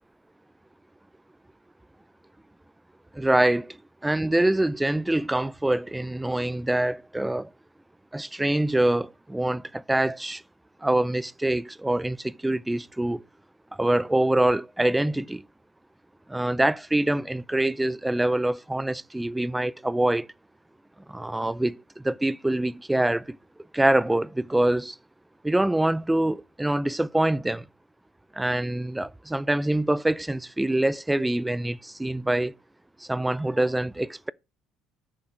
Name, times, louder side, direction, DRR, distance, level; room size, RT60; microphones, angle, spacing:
voice 1, 3.1-3.8 4.0-7.5 8.1-10.4 10.8-13.2 13.8-15.4 16.3-20.3 21.1-23.4 23.7-25.0 25.4-27.7 28.4-32.5 33.0-34.3, right 1 dB, 5° right, 0.4 m, -25 dB
10.5 x 6.3 x 4.6 m
cardioid pair, 110°, 0 cm